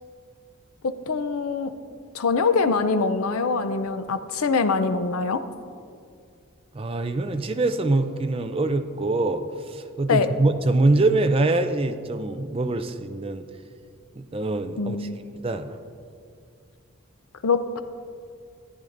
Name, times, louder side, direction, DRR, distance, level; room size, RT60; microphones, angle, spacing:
voice 1, 0.8-1.7 2.1-5.4 10.1-10.3 14.8-15.2 17.4-17.8, left 4 dB, 85° left, 10 dB, 0.5 m, -23 dB
voice 2, 6.7-13.4 14.2-15.1 15.4-15.8, right 2 dB, 25° right, 8 dB, 0.4 m, -24 dB
14.0 x 10.0 x 2.6 m, 2.3 s
head